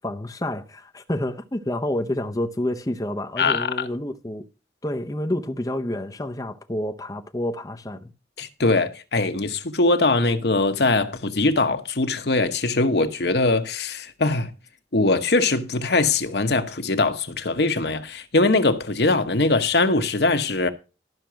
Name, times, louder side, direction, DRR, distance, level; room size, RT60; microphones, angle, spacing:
voice 1, 0.0-4.4 4.8-8.1, left 1 dB, 20° left, 0.7 m, -29 dB
voice 2, 3.4-3.9 8.4-14.5 14.9-20.7, left 3 dB, 65° left, 1.1 m, -21 dB
12.5 x 5.8 x 6.2 m
head